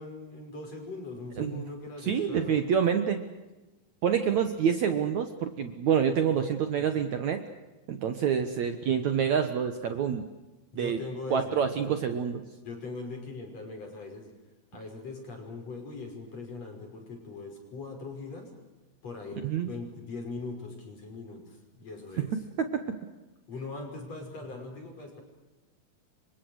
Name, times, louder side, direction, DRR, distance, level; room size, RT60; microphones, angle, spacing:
voice 1, 0.0-2.6 6.7-6.9 10.7-12.2 12.6-14.3 14.7-18.5 19.0-22.3 23.5-25.2, left 3 dB, 40° left, 3 dB, 6.9 m, -41 dB
voice 2, 2.0-3.2 4.0-7.4 7.9-10.2 10.8-11.0 11.3-12.4 19.4-19.7 22.6-23.0, right 7 dB, 60° right, 8 dB, 2.3 m, -27 dB
29.5 x 25.0 x 6.5 m, 1.1 s
omnidirectional pair, 4.4 m